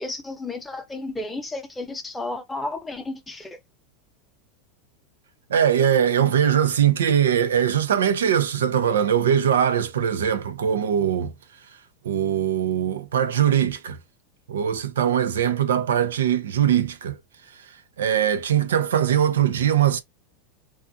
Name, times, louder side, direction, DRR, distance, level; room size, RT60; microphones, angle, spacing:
voice 1, 0.0-3.6, left 2 dB, 10° left, 0.8 m, -32 dB
voice 2, 5.5-11.3 12.0-14.0 14.5-17.2 18.0-20.0, right 9 dB, 85° right, 0.5 m, -21 dB
2.4 x 2.4 x 2.6 m
hypercardioid pair, 105°, 0 cm